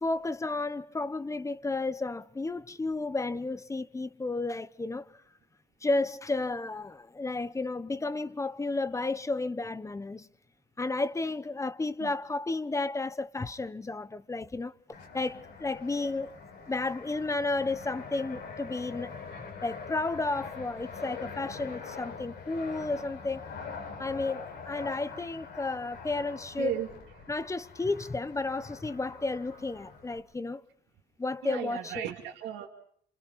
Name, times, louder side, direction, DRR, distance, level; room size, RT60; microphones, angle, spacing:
voice 1, 0.0-5.1 5.8-10.3 10.8-14.7 15.1-16.3 16.7-19.1 19.6-23.5 24.0-26.8 27.3-30.6 31.2-32.1, left 3 dB, 15° left, 1.0 m, -32 dB
Fixed-wing aircraft airplane, 14.9-30.2, left 5 dB, 75° left, 5.6 m, -44 dB
voice 2, 26.6-26.9 31.4-32.7, right 12 dB, 90° right, 2.6 m, -35 dB
29.5 x 27.0 x 4.2 m
cardioid pair, 105°, 18 cm